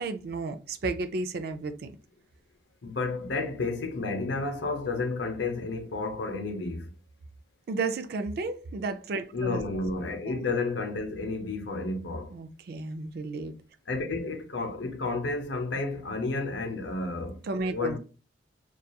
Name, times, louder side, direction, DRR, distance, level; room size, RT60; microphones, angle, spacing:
voice 1, 0.0-1.9 7.7-9.6 12.3-13.6 17.5-18.0, right 3 dB, 55° right, 0.4 m, -32 dB
voice 2, 2.8-6.9 9.3-12.3 13.9-18.0, left 3 dB, 70° left, 0.6 m, -31 dB
2.8 x 2.3 x 2.2 m
head